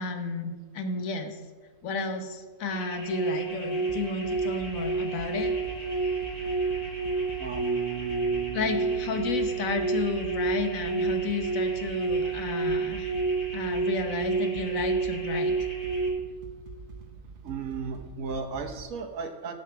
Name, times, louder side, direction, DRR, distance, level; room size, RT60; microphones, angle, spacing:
voice 1, 0.0-1.4 1.8-5.5 8.5-13.1 13.5-15.5, left 4 dB, 80° left, 6 dB, 1.4 m, -32 dB
sound 1, 2.7-16.1, right 4 dB, 55° left, 3.3 m, -29 dB
sound 2, 3.9-18.8, right 4 dB, 50° right, 0.8 m, -45 dB
voice 2, 7.4-9.4 17.4-19.5, right 6 dB, 75° right, 3 dB, 1.4 m, -36 dB
16.5 x 5.7 x 4.6 m, 1.4 s
omnidirectional pair, 1.4 m